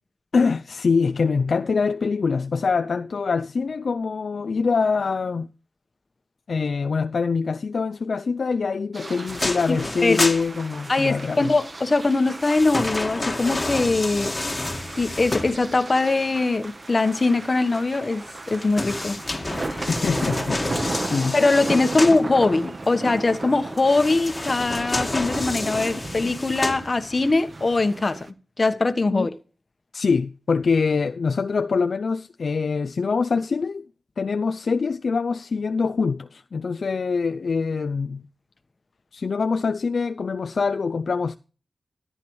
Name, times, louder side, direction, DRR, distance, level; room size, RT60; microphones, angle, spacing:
voice 1, 0.3-5.5 6.5-11.5 19.9-21.4 29.1-29.3 29.9-33.8 34.2-38.2 39.1-41.3, left 5 dB, 70° left, 0.4 m, -24 dB
sound 1, 8.9-28.3, right 2 dB, 45° right, 1.0 m, -36 dB
sound 2, 9.3-11.2 12.0-16.0 18.4-22.2 23.8-27.3 27.8-27.9, left 2 dB, 25° left, 1.6 m, -29 dB
voice 2, 9.7-10.2 10.9-14.3 15.0-19.2 19.6-19.9 21.3-29.3, left 3 dB, 45° left, 1.2 m, -22 dB
14.0 x 8.7 x 3.1 m
cardioid pair, 55°, 0 cm